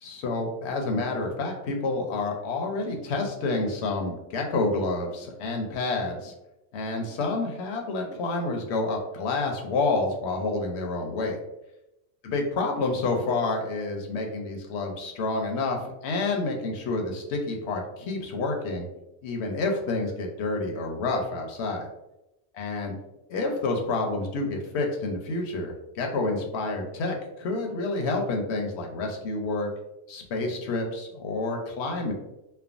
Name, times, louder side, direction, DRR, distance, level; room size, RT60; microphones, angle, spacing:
voice 1, 0.0-6.3 6.7-11.4 12.2-18.9 19.2-21.9 22.5-22.9 23.3-29.7 30.1-32.1, left 3 dB, 65° left, 2 dB, 0.8 m, -29 dB
3.3 x 2.0 x 2.4 m, 0.91 s
omnidirectional pair, 1.4 m